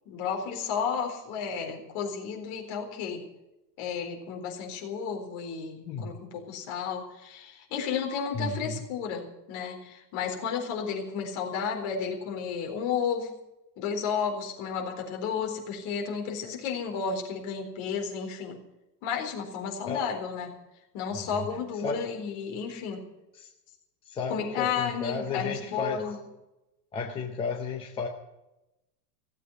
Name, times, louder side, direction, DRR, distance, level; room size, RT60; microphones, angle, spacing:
voice 1, 0.1-3.2 3.8-13.3 13.8-18.6 19.0-20.5 20.9-23.0 24.3-26.2, left 6 dB, 35° left, 1 dB, 4.1 m, -32 dB
voice 2, 8.3-8.8 19.9-20.1 21.1-21.5 21.8-22.0 23.3-23.5 24.0-26.0 26.9-28.1, left 4 dB, 10° left, 2 dB, 0.6 m, -33 dB
17.0 x 8.2 x 9.4 m, 0.93 s
supercardioid pair, 175°, 49 cm